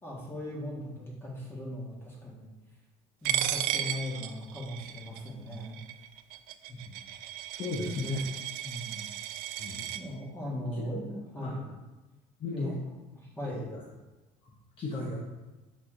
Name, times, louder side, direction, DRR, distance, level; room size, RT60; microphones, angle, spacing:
voice 1, 0.0-2.5 3.2-5.8 6.7-7.0 8.6-9.0 9.9-11.7 12.5-13.7, left 1 dB, 15° left, -3 dB, 1.6 m, -39 dB
Coin (dropping), 3.2-10.0, right 12 dB, 75° right, 0.4 m, -35 dB
voice 2, 7.5-8.3 9.6-9.9 10.7-11.0 11.4-11.5 12.4-12.8 13.4-13.6 14.4-14.5 14.8-15.2, left 2 dB, 35° left, -3 dB, 0.9 m, -35 dB
6.4 x 3.9 x 3.7 m, 1.1 s
cardioid pair, 135°, 15 cm